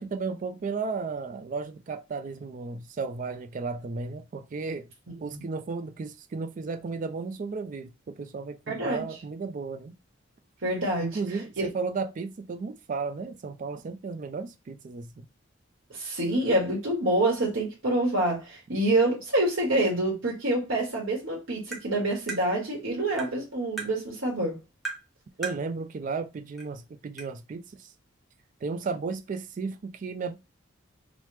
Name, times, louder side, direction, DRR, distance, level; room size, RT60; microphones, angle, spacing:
voice 1, 0.0-4.9 5.2-10.0 11.0-15.3 25.4-27.9 28.6-30.4, right 4 dB, 40° right, 0.3 m, -34 dB
voice 2, 5.1-5.5 8.7-9.0 10.6-11.2 11.6-11.7 15.9-24.6, right 1 dB, 80° right, 1.2 m, -27 dB
Tap, 21.7-21.8 22.3-22.4 23.2-23.3 23.8-23.9 24.8-25.0 25.4-25.6 26.6-26.7 27.2-27.3, right 4 dB, ahead, 0.8 m, -35 dB
3.1 x 2.0 x 3.1 m
head